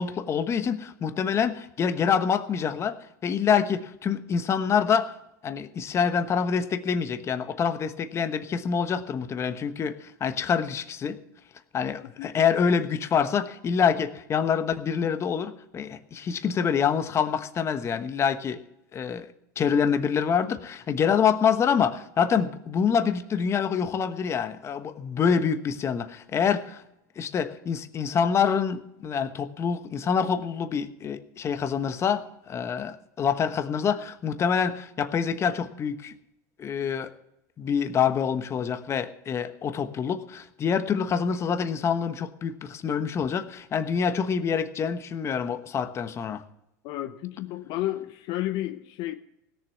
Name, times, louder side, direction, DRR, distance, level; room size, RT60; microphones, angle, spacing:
voice 1, 0.0-3.0 3.2-5.1 5.4-11.2 11.7-18.6 18.9-19.3 19.6-26.8 27.2-36.1 36.6-37.1 37.6-46.4, left 7 dB, 30° left, 10 dB, 1.2 m, -26 dB
voice 2, 46.8-49.1, left 15 dB, 55° left, 9 dB, 0.9 m, -31 dB
17.5 x 7.0 x 8.3 m, 0.84 s
supercardioid pair, 110°, 9 cm